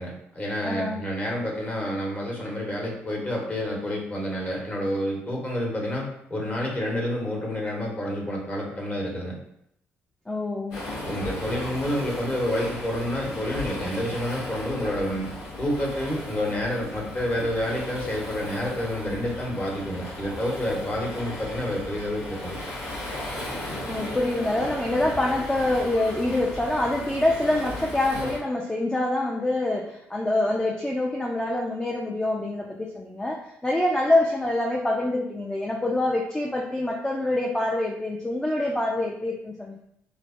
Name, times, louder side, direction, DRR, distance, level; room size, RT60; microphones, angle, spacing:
voice 1, 0.0-9.4 11.0-22.6, equal, 30° left, -2 dB, 1.0 m, -29 dB
voice 2, 0.6-1.0 10.3-10.9 23.9-39.8, left 1 dB, 15° left, -1 dB, 0.4 m, -25 dB
Waves surf, 10.7-28.4, left 1 dB, 85° left, 0.8 m, -36 dB
3.2 x 2.0 x 2.5 m, 0.76 s
supercardioid pair, 55°, 5 cm